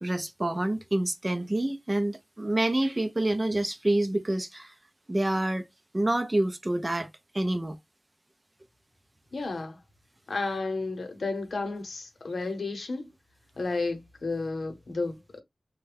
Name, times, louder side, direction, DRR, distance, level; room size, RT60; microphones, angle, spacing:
voice 1, 0.0-4.7 5.1-5.6 5.9-7.1 7.3-7.8, right 1 dB, 25° right, 0.5 m, -27 dB
voice 2, 9.3-9.8 10.3-13.1 13.6-15.2, left 3 dB, 80° left, 0.8 m, -32 dB
3.4 x 2.2 x 3.3 m
wide cardioid pair, 75°, 0 cm